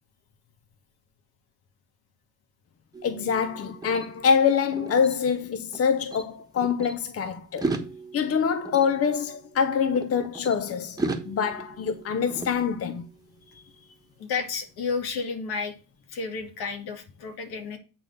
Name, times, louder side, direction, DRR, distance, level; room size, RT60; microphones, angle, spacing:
sound 1, 2.9-5.8 6.1-6.9 7.5-10.6 11.0-13.2, right 2 dB, 10° right, 1.3 m, -36 dB
voice 1, 3.0-7.7 8.1-11.0 11.2-13.1, left 6 dB, 40° left, 0.8 m, -25 dB
voice 2, 14.2-15.7 16.1-17.8, left 5 dB, 75° left, 2.3 m, -31 dB
9.1 x 3.9 x 6.7 m
cardioid pair, 130°, 38 cm